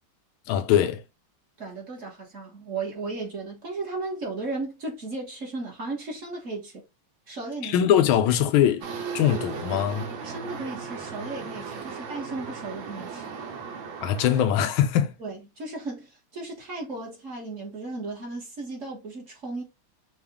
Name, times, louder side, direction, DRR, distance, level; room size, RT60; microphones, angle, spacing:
voice 1, 0.5-1.0 7.6-8.9 9.1-10.1 14.0-15.2, left 10 dB, 80° left, 1.4 m, -22 dB
voice 2, 1.6-6.8 7.3-7.8 10.2-13.4 15.2-19.6, right 3 dB, 40° right, 1.4 m, -35 dB
sound 1, 8.8-14.5, right 6 dB, 85° right, 1.8 m, -36 dB
5.9 x 2.4 x 3.4 m
omnidirectional pair, 2.2 m